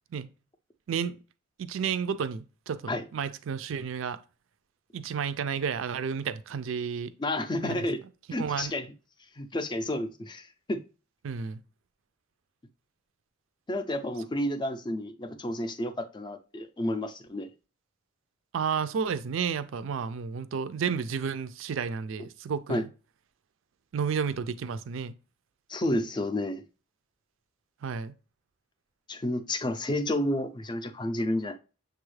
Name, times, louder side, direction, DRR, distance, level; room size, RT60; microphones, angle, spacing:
voice 1, 1.6-4.2 4.9-7.1 7.6-7.8 8.4-8.7 11.2-11.6 18.5-22.9 23.9-25.1 27.8-28.1, right 6 dB, 75° right, 0.4 m, -31 dB
voice 2, 7.2-8.0 8.3-8.9 9.4-10.8 13.7-17.5 22.7-22.8 25.7-26.6 29.1-31.6, left 1 dB, 20° left, 0.4 m, -30 dB
6.7 x 2.3 x 3.2 m
head